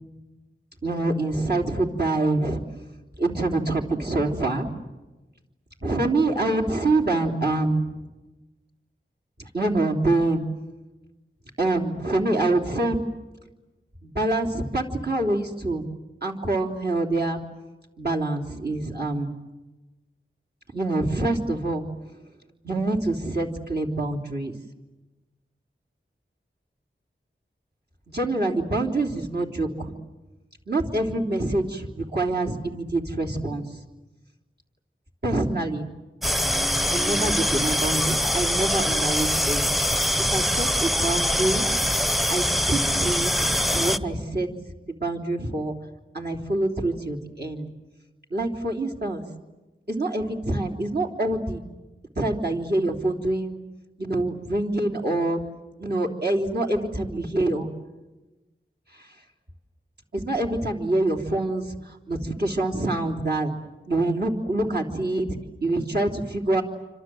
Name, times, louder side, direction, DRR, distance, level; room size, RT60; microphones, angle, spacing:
voice 1, 0.8-2.6 3.2-4.7 5.8-7.9 9.4-10.4 11.6-13.0 14.0-15.9 16.2-17.4 18.0-19.3 20.7-21.9 22.6-24.5 28.1-29.9 30.7-33.8 35.2-35.9 36.9-39.7 40.2-41.7 42.3-44.5 44.9-45.7 46.1-47.7 48.3-49.2 49.9-51.6 52.2-53.6 54.0-55.4 55.8-57.7 58.9-59.1 60.1-63.5 63.9-66.6, right 2 dB, 50° right, -1 dB, 3.5 m, -26 dB
sound 1, 36.2-44.0, left 1 dB, ahead, 0.9 m, -23 dB
29.0 x 26.0 x 7.9 m, 1.1 s
wide cardioid pair, 50°, 21 cm